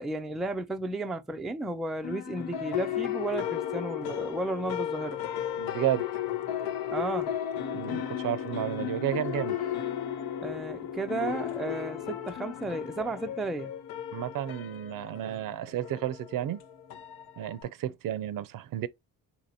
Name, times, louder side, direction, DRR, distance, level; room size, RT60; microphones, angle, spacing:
voice 1, 0.0-5.2 6.9-7.3 10.4-13.7, right 2 dB, ahead, 0.3 m, -33 dB
sound 1, 2.0-17.6, left 10 dB, 75° left, 0.7 m, -34 dB
voice 2, 5.6-6.2 7.7-9.6 14.1-16.6 17.4-18.9, right 12 dB, 65° right, 0.5 m, -32 dB
2.9 x 2.8 x 4.0 m
cardioid pair, 90°, 36 cm